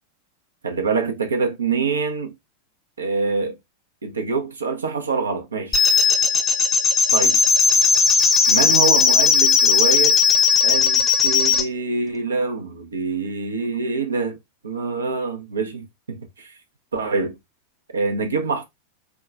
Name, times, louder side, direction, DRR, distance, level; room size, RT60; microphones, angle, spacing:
voice 1, 0.6-2.3 3.0-3.6 4.0-5.8 7.1-7.4 8.5-10.2 10.6-14.4 14.6-16.6 16.9-17.4 17.9-18.6, right 4 dB, 70° right, 0.7 m, -25 dB
sound 1, 5.7-11.6, left 5 dB, 20° left, 0.7 m, -17 dB
4.5 x 2.3 x 2.5 m
figure-of-eight pair, 90°, 0 cm